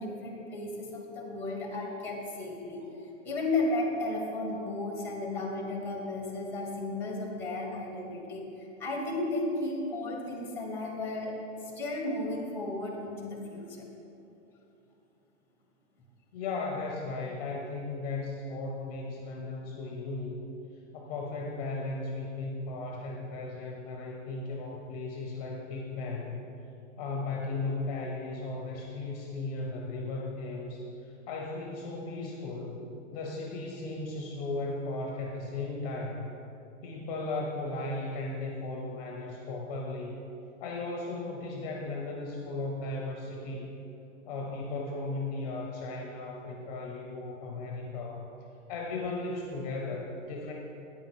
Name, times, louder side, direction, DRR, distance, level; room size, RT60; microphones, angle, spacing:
voice 1, 0.0-2.9 3.2-13.8, left 2 dB, 5° left, -1 dB, 1.1 m, -34 dB
voice 2, 16.3-20.4 20.9-26.4 27.0-36.3 36.8-40.2 40.6-43.7 44.3-48.3 48.7-50.5, left 3 dB, 30° left, 0 dB, 0.8 m, -36 dB
9.1 x 5.2 x 6.1 m, 2.8 s
hypercardioid pair, 155°, 38 cm